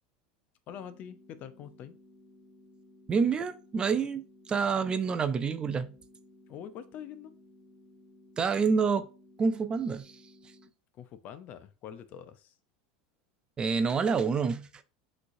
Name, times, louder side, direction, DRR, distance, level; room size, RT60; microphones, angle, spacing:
voice 1, 0.7-1.9 6.5-7.3 10.9-12.5, left 9 dB, 50° left, 0.5 m, -44 dB
sound 1, 0.7-10.7, left 1 dB, 10° right, 1.4 m, -58 dB
voice 2, 3.1-5.9 8.4-9.1 9.4-10.2 13.6-14.8, right 5 dB, 25° right, 0.4 m, -28 dB
6.0 x 3.2 x 2.6 m
hypercardioid pair, 100°, 4 cm